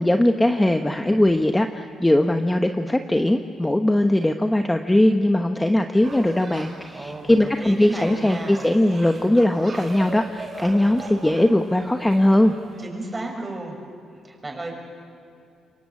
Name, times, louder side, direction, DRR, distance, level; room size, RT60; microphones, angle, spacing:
voice 1, 0.0-12.5, left 1 dB, 10° left, 5 dB, 1.0 m, -20 dB
sound 1, 6.0-12.8, right 3 dB, 40° right, 5.6 m, -39 dB
voice 2, 6.9-8.6 12.8-13.8 14.2-14.7, right 2 dB, 20° right, 2 dB, 6.6 m, -33 dB
27.5 x 23.5 x 8.7 m, 2.4 s
cardioid pair, 105°, 0 cm